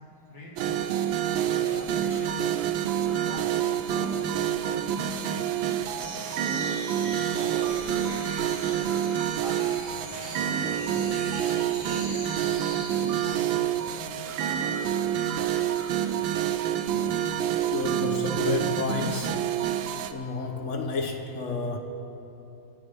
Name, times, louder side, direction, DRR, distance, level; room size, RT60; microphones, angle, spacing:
voice 1, 0.3-2.5 3.1-6.7 7.2-9.0 9.3-11.1 11.4-14.4, left 1 dB, 80° left, -4 dB, 3.2 m, -43 dB
sound 1, 0.6-20.1, right 10 dB, 85° right, 1.4 m, -28 dB
sound 2, 2.1-3.4 7.9-9.8 14.2-16.1, right 1 dB, ahead, 3.4 m, -48 dB
sound 3, 6.0-13.5, right 1 dB, 40° right, 3.7 m, -42 dB
voice 2, 17.7-19.5 20.1-21.8, left 3 dB, 55° left, 4 dB, 0.9 m, -30 dB
26.5 x 9.2 x 3.4 m, 2.9 s
omnidirectional pair, 2.2 m